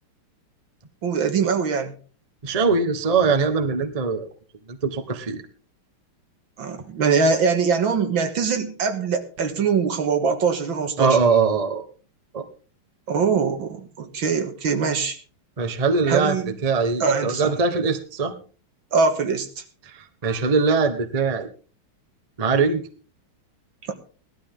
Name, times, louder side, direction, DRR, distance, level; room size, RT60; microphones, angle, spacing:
voice 1, 1.0-1.9 6.6-11.2 13.1-15.2 16.1-16.6 17.0-17.5 18.9-19.6, right 5 dB, 70° right, 7 dB, 2.3 m, -22 dB
voice 2, 2.4-4.3 4.7-5.4 11.0-11.8 12.3-12.4 15.6-18.3 19.8-21.5 22.4-22.8, right 4 dB, 25° right, 7 dB, 1.0 m, -22 dB
17.5 x 12.5 x 3.7 m, 0.38 s
omnidirectional pair, 2.2 m